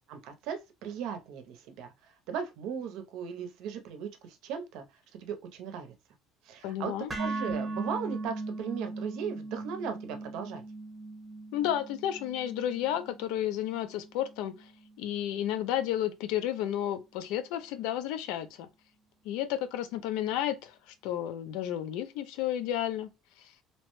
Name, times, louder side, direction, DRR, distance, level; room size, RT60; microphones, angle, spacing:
voice 1, 0.1-1.9 2.3-4.8 5.2-5.9 6.5-10.6, right 7 dB, 65° right, 0.6 m, -37 dB
voice 2, 6.6-7.1 11.5-14.7 15.0-18.7 19.2-20.7 21.0-23.1, left 11 dB, 75° left, 0.4 m, -32 dB
sound 1, 7.1-15.2, right 2 dB, 10° right, 0.8 m, -39 dB
2.8 x 2.1 x 3.0 m
cardioid pair, 165°, 0 cm